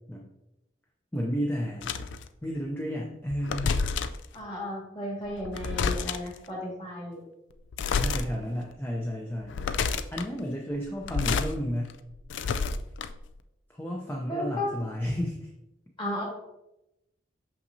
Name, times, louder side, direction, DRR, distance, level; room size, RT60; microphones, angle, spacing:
voice 1, 1.1-2.0 2.4-3.9 7.9-9.6 10.1-12.0 13.7-15.5, equal, 10° left, -1 dB, 0.5 m, -32 dB
sound 1, 1.8-2.2 3.3-4.3 5.3-6.4 7.7-8.2 8.7-8.8 9.4-10.3 10.9-11.5 11.9-13.3, left 5 dB, 75° left, 0.4 m, -29 dB
voice 2, 4.3-7.2 14.3-14.7 16.0-16.2, left 1 dB, 25° left, -3 dB, 1.9 m, -34 dB
6.3 x 5.8 x 2.7 m, 0.90 s
head